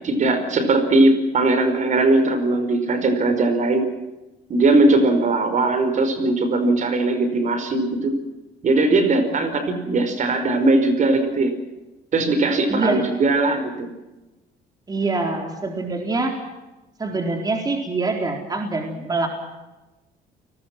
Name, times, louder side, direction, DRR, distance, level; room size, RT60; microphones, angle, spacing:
voice 1, 0.0-3.9 4.5-8.1 8.6-11.5 12.1-13.9, right 2 dB, 45° right, 9 dB, 5.0 m, -19 dB
voice 2, 12.7-13.1 14.9-16.4 17.0-19.3, right 3 dB, 25° right, 2 dB, 4.1 m, -24 dB
29.5 x 20.0 x 6.2 m, 1.1 s
cardioid pair, 110°, 17 cm